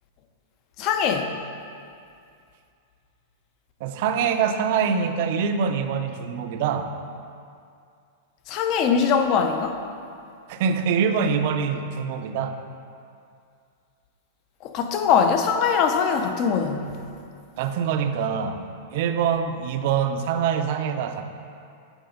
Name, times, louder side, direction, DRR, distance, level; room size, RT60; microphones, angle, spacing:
voice 1, 0.8-1.3 8.5-9.8 14.6-16.9, left 6 dB, 35° left, 6 dB, 0.5 m, -22 dB
voice 2, 3.8-6.9 10.5-12.6 17.6-18.6 18.9-21.2, right 7 dB, 50° right, 7 dB, 0.5 m, -24 dB
8.0 x 4.2 x 5.2 m, 2.4 s
supercardioid pair, 160°, 0 cm